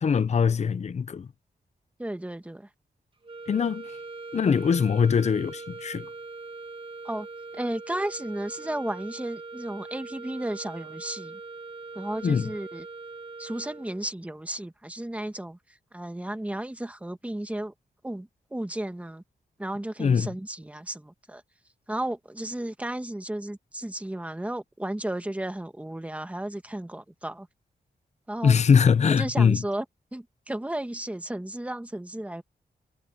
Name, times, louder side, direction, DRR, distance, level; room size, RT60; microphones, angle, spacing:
voice 1, 0.0-1.3 3.5-3.9 4.3-6.1 12.2-12.5 20.0-20.3 28.4-29.6, left 6 dB, 45° left, 0.6 m, -22 dB
voice 2, 2.0-2.7 7.0-7.3 7.5-11.4 11.9-12.9 13.4-15.6 15.9-17.7 18.0-19.2 19.6-21.4 21.9-27.5 28.3-28.6 29.2-29.8 30.1-32.4, right 1 dB, 10° right, 1.5 m, -34 dB
sound 1, 3.2-14.1, right 3 dB, 35° right, 1.9 m, -41 dB
wide cardioid pair, 155°, 16 cm